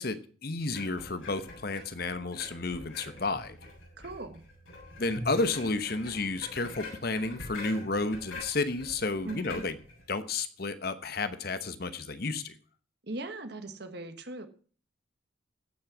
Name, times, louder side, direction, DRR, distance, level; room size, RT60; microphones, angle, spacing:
voice 1, 0.0-3.6 5.0-9.7 10.1-12.5, left 3 dB, 50° left, 11 dB, 1.0 m, -32 dB
sound 1, 0.7-10.1, left 2 dB, 85° left, 7.7 m, -45 dB
voice 2, 4.0-4.4 9.2-9.6 13.0-14.5, right 2 dB, 55° right, 8 dB, 1.5 m, -39 dB
15.5 x 6.4 x 6.2 m, 0.42 s
head